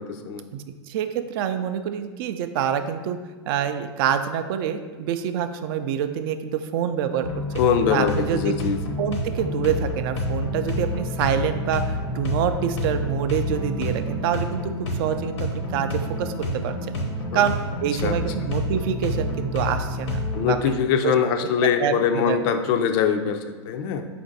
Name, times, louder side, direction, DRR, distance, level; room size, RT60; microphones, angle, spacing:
voice 1, 0.0-0.4 7.6-8.8 17.3-17.5 18.0-18.1 20.3-24.0, left 7 dB, 50° left, 7 dB, 0.4 m, -23 dB
voice 2, 0.5-3.2 3.5-7.3 7.9-8.4 9.0-14.7 15.0-17.0 17.3-17.5 17.8-20.2 20.5-21.1 21.8-22.4, right 9 dB, 55° right, 9 dB, 0.4 m, -26 dB
sound 1, 7.2-20.6, left 1 dB, 75° left, 0.9 m, -28 dB
4.3 x 2.6 x 4.0 m, 1.4 s
hypercardioid pair, 110°, 15 cm